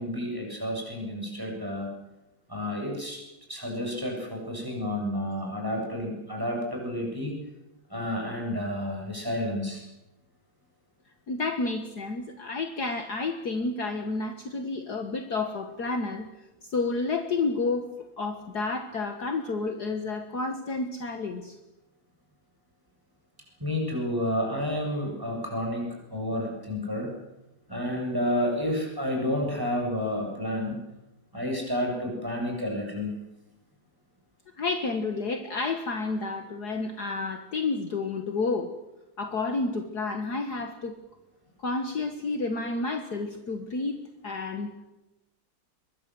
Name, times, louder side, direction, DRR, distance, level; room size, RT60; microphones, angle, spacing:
voice 1, 0.0-1.9 2.5-3.2 3.5-7.3 7.9-9.8 23.6-27.1 27.7-30.8 31.3-33.1, left 1 dB, 10° right, 0 dB, 7.5 m, -30 dB
voice 2, 11.3-16.3 16.6-21.6 34.6-38.7 39.2-41.0 41.6-44.7, left 3 dB, 55° left, 6 dB, 2.0 m, -30 dB
23.5 x 22.0 x 7.8 m, 0.97 s
omnidirectional pair, 2.2 m